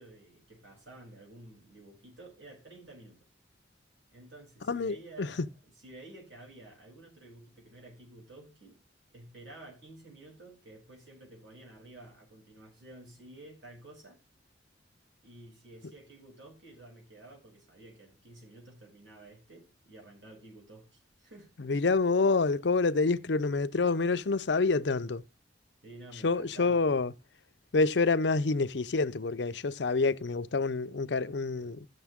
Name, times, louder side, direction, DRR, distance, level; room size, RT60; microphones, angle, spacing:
voice 1, 0.0-3.3 4.1-8.8 9.1-14.2 15.2-21.5 25.8-26.8, right 2 dB, 75° right, 6.8 m, -52 dB
voice 2, 4.7-5.5 21.6-25.2 26.2-27.1 27.7-31.9, left 3 dB, 70° left, 0.6 m, -27 dB
14.5 x 6.7 x 3.6 m
head